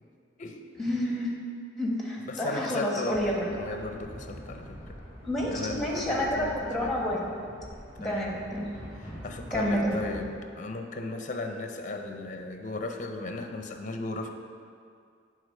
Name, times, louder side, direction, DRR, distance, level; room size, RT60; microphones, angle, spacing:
voice 1, 0.8-1.3 1.8-3.5 5.2-7.3 8.0-8.7 9.5-10.0, equal, ahead, -3 dB, 1.1 m, -29 dB
voice 2, 2.2-5.0 5.5-6.9 8.0-8.4 9.0-14.3, left 3 dB, 45° left, 5 dB, 0.5 m, -36 dB
sound 1, 3.1-10.3, equal, 15° right, 1.9 m, -44 dB
8.1 x 3.9 x 5.4 m, 2.3 s
head